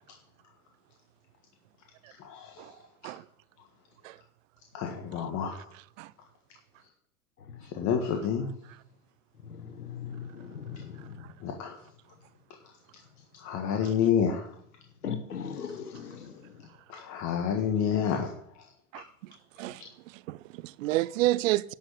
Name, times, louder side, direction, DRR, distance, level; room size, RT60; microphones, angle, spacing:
voice 1, 2.2-2.7 4.7-5.5 7.6-8.5 11.4-11.8 13.4-14.5 16.9-18.6, left 7 dB, 40° left, 1.6 m, -29 dB
voice 2, 7.4-7.7 9.4-11.2 15.0-16.7 19.7-19.8, left 7 dB, 90° left, 1.3 m, -39 dB
voice 3, 18.9-19.3 19.6-21.7, right 17 dB, 60° right, 0.6 m, -30 dB
11.5 x 6.4 x 6.6 m
hypercardioid pair, 100°, 45 cm